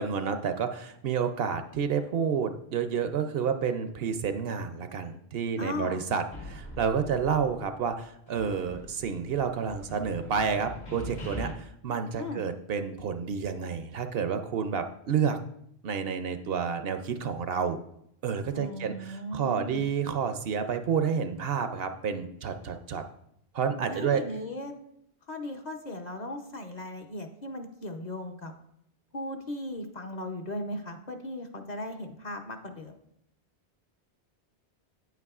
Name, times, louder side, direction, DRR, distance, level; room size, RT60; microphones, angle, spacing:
voice 1, 0.0-15.4 15.8-17.8 18.2-23.0 23.5-24.2, right 6 dB, 65° right, 8 dB, 0.7 m, -30 dB
voice 2, 5.6-6.0 12.2-12.4 18.5-19.8 23.9-24.7 25.3-28.5 29.1-32.9, left 1 dB, 45° left, 4 dB, 0.7 m, -37 dB
sound 1, 6.3-8.0 8.3-11.5, left 1 dB, 75° left, 2.4 m, -43 dB
9.1 x 8.1 x 2.4 m, 0.75 s
omnidirectional pair, 1.1 m